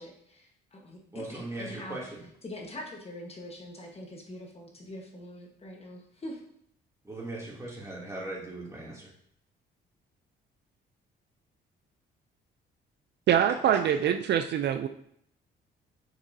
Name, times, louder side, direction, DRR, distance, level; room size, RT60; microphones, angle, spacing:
voice 1, 0.0-2.0 2.4-6.4, left 1 dB, 30° left, 0 dB, 1.3 m, -43 dB
voice 2, 1.1-2.3 7.0-9.1 13.7-13.8, right 2 dB, 15° right, -4 dB, 2.7 m, -39 dB
voice 3, 13.3-14.9, right 9 dB, 60° right, 8 dB, 0.5 m, -24 dB
6.6 x 6.0 x 2.7 m, 0.69 s
cardioid pair, 90°, 20 cm